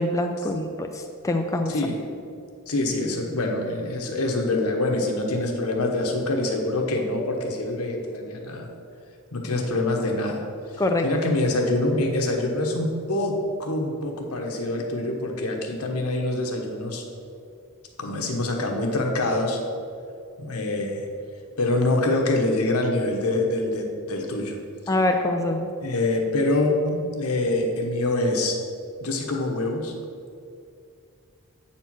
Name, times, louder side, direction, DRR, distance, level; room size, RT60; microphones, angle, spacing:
voice 1, 0.0-1.7 10.8-11.1 24.9-25.7, left 1 dB, 15° left, 4 dB, 0.4 m, -24 dB
voice 2, 1.7-2.0 2.7-8.7 9.3-10.4 10.7-17.0 18.0-19.6 20.4-21.1 21.6-24.6 25.8-28.6 29.0-29.9, left 2 dB, 85° left, 2 dB, 1.2 m, -25 dB
8.2 x 4.4 x 6.1 m, 2.4 s
head